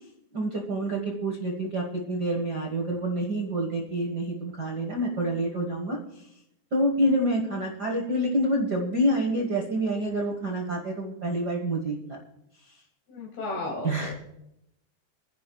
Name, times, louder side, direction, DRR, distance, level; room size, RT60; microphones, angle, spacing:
voice 1, 0.3-6.3 6.7-12.2 13.8-14.1, right 1 dB, 50° right, 0 dB, 1.2 m, -27 dB
voice 2, 13.1-14.1, left 2 dB, 50° left, -2 dB, 2.7 m, -34 dB
25.5 x 10.5 x 2.3 m, 0.82 s
omnidirectional pair, 4.1 m